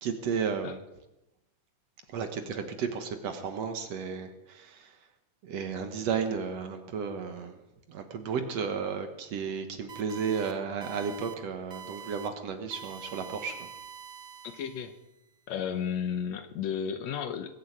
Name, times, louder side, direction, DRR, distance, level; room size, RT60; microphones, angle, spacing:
voice 1, 0.0-0.8 2.1-4.9 5.4-7.6 7.9-13.6, right 6 dB, 60° right, 7 dB, 2.2 m, -33 dB
sound 1, 9.9-10.5 10.8-11.3 11.7-12.3 12.7-15.0, right 7 dB, 40° right, 0.9 m, -45 dB
voice 2, 14.4-14.9 15.5-17.5, left 8 dB, 70° left, 9 dB, 2.0 m, -33 dB
21.0 x 8.0 x 8.6 m, 0.96 s
omnidirectional pair, 3.6 m